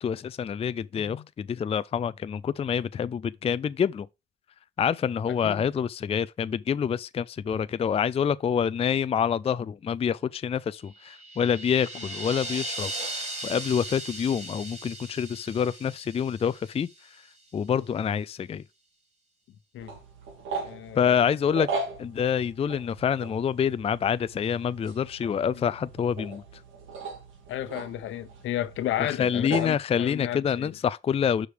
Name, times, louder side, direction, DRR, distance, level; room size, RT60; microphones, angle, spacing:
voice 1, 0.0-4.1 4.8-16.9 17.5-18.6 21.0-21.7 22.0-26.4 29.0-31.5, left 7 dB, 30° left, 0.4 m, -27 dB
voice 2, 0.9-1.3 3.0-3.1 5.3-5.6 17.7-17.9 19.7-19.9 20.6-21.1 25.5-25.6 27.5-30.7, left 12 dB, 80° left, 1.0 m, -33 dB
sound 1, 10.9-17.2, right 2 dB, 35° right, 3.5 m, -38 dB
sound 2, 19.8-29.8, right 3 dB, 80° right, 2.8 m, -39 dB
6.4 x 5.1 x 4.8 m
cardioid pair, 90°, 20 cm